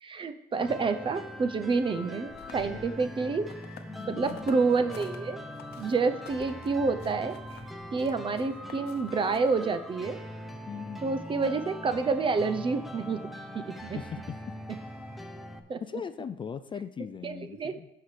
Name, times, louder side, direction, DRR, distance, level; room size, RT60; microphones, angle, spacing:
voice 1, 0.0-3.5 4.1-5.4 5.8-7.4 7.9-10.2 11.0-13.2 13.5-14.0 15.7-15.8 17.2-17.7, right 4 dB, 30° right, 10 dB, 0.6 m, -28 dB
sound 1, 0.6-15.6, left 1 dB, ahead, 0.9 m, -42 dB
sound 2, 2.3-5.2 5.6-9.7, left 9 dB, 70° left, 0.8 m, -51 dB
voice 2, 3.8-4.5 10.7-11.3 13.9-14.4 15.8-17.9, left 7 dB, 30° left, 11 dB, 0.4 m, -39 dB
15.0 x 5.7 x 3.3 m, 0.94 s
cardioid pair, 110°, 17 cm